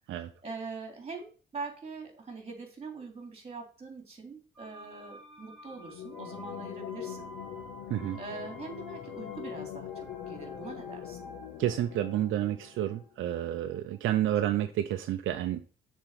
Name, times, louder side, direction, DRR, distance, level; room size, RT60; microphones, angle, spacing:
voice 1, 0.1-7.3 8.1-11.2, right 4 dB, 30° right, 3 dB, 3.2 m, -43 dB
sound 1, 4.5-14.3 14.6-14.7, equal, ahead, 3.6 m, -51 dB
sound 2, 5.7-13.1, left 11 dB, 80° left, 0.8 m, -43 dB
voice 2, 11.6-15.6, right 12 dB, 80° right, 8 dB, 0.6 m, -30 dB
6.9 x 4.5 x 5.7 m, 0.38 s
cardioid pair, 90°, 20 cm